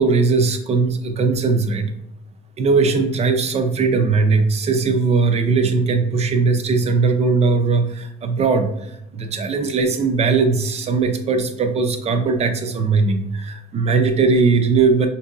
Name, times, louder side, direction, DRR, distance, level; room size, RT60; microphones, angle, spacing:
voice 1, 0.0-1.9 2.6-15.1, right 4 dB, 40° right, 7 dB, 0.5 m, -19 dB
4.4 x 2.7 x 2.4 m, 0.85 s
cardioid pair, 110°, 17 cm